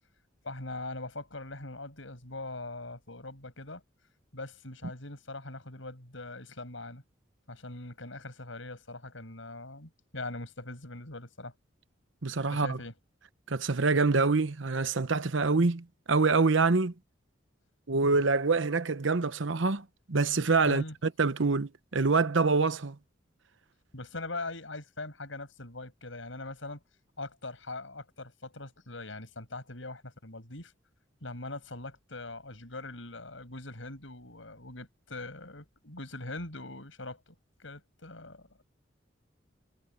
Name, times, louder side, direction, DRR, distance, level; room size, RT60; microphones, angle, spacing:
voice 1, 0.4-3.8 4.3-7.0 7.5-11.5 12.5-12.9 20.6-21.0 23.9-26.8 27.2-30.7 31.2-37.3 37.6-38.6, left 2 dB, 75° left, 6.1 m, -42 dB
voice 2, 12.2-12.8 13.5-16.9 17.9-23.0, right 4 dB, 75° right, 0.9 m, -26 dB
head